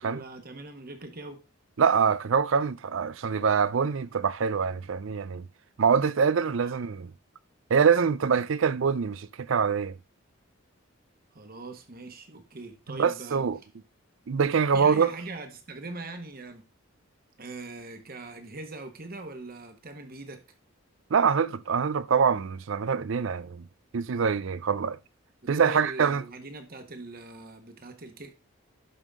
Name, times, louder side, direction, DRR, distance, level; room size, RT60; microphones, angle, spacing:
voice 1, 0.0-1.4 6.6-6.9 11.3-13.5 14.7-16.7 17.4-20.4 25.4-28.3, right 2 dB, 45° right, 1.4 m, -41 dB
voice 2, 1.8-5.4 5.8-7.1 7.7-10.0 12.9-13.6 14.3-15.1 21.1-23.7 23.9-25.0 25.5-26.2, right 6 dB, 65° right, 0.5 m, -24 dB
11.0 x 5.5 x 3.7 m
head